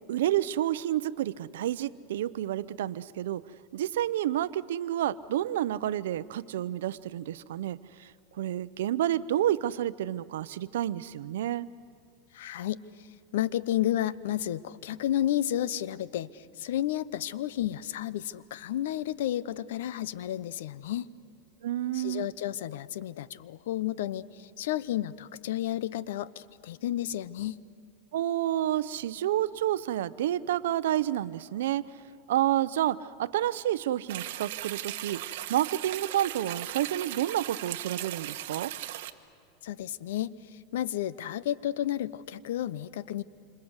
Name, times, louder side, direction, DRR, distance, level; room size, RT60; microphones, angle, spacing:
voice 1, 0.1-3.4 3.7-7.8 8.4-11.7 21.6-22.3 28.1-31.8 32.3-35.2 35.5-38.7, right 12 dB, 85° right, 16 dB, 0.7 m, -29 dB
voice 2, 12.3-13.1 13.3-21.1 21.9-27.6 39.6-43.2, left 12 dB, 80° left, 17 dB, 0.8 m, -32 dB
sound 1, 34.1-39.1, right 14 dB, 70° right, 1.3 m, -38 dB
27.5 x 26.5 x 8.1 m, 2.4 s
supercardioid pair, 145°, 0 cm